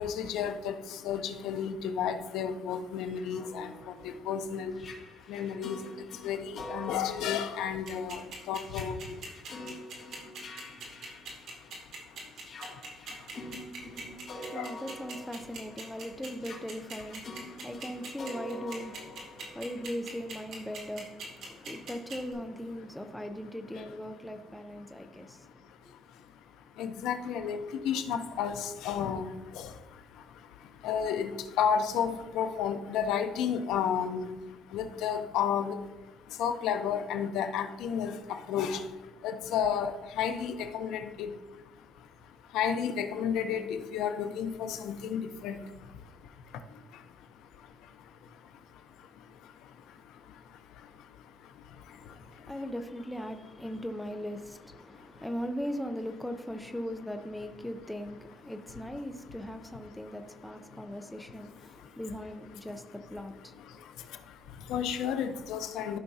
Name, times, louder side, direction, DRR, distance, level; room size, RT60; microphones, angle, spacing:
voice 1, 0.0-14.8 17.5-17.7 19.3-19.6 21.5-21.9 23.7-23.9 24.5-52.6 54.8-55.3 59.8-62.0 62.6-66.0, left 7 dB, 80° left, 0.7 m, -35 dB
sound 1, 3.1-11.9 12.4-20.2, left 1 dB, 35° left, 2.3 m, -46 dB
sound 2, 7.9-22.3, right 5 dB, 60° right, 2.4 m, -42 dB
voice 2, 13.9-25.7 51.9-63.6, equal, 5° left, 0.5 m, -39 dB
13.5 x 5.8 x 2.8 m
cardioid pair, 150°, 0 cm